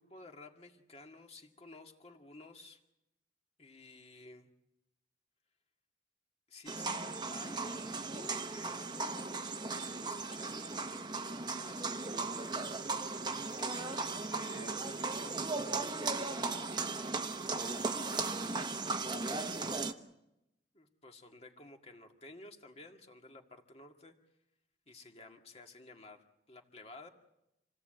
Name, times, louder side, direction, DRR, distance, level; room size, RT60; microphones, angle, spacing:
voice 1, 0.0-2.8 3.6-4.5 6.5-9.0 9.7-10.9 11.6-12.7 13.6-16.3 17.5-18.4 19.2-20.0 20.7-24.1 24.9-27.1, left 2 dB, 35° left, 3 dB, 2.0 m, -53 dB
sound 1, 6.7-19.9, right 3 dB, 25° right, 1.0 m, -37 dB
27.5 x 17.5 x 7.7 m, 0.89 s
head